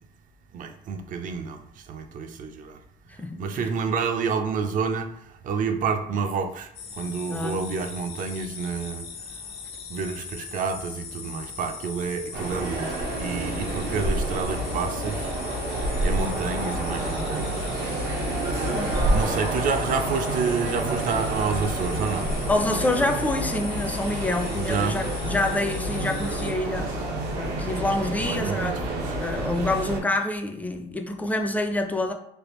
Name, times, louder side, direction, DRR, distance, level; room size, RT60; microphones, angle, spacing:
voice 1, 0.5-2.8 3.4-5.1 5.4-6.7 7.0-9.0 9.9-15.3 16.0-17.7 19.1-22.3 24.5-25.0 28.2-29.1, right 5 dB, 50° right, 7 dB, 0.5 m, -29 dB
voice 2, 3.2-3.7 7.3-7.6 18.7-19.1 22.5-27.0 27.4-28.7 29.2-32.1, left 2 dB, 10° left, 5 dB, 0.4 m, -27 dB
sound 1, 6.7-26.5, left 6 dB, 70° left, 0.7 m, -40 dB
sound 2, 12.3-30.0, right 1 dB, 80° right, 0.8 m, -28 dB
3.3 x 2.5 x 3.0 m, 0.74 s
cardioid pair, 110°, 17 cm